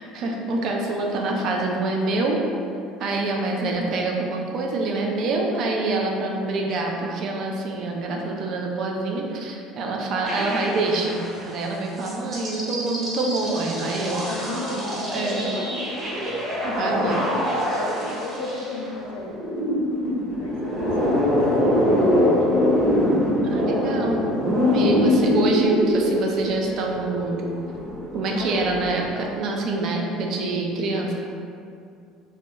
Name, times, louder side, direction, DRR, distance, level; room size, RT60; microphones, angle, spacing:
voice 1, 0.1-2.4 3.0-14.8 15.1-15.6 16.6-17.3 23.4-24.3 24.7-27.4 28.1-31.1, right 2 dB, 60° right, 0 dB, 0.4 m, -26 dB
voice 2, 3.5-3.8 6.1-6.5 14.2-16.2 17.0-19.8 20.4-21.4 21.6-22.0 22.4-22.5 25.2-25.7 28.4-29.4, left 3 dB, 90° left, -1 dB, 0.3 m, -35 dB
sound 1, 10.2-11.5 12.0-29.1, left 1 dB, 35° right, 1.0 m, -24 dB
2.8 x 2.0 x 2.2 m, 2.4 s
supercardioid pair, 100°, 0 cm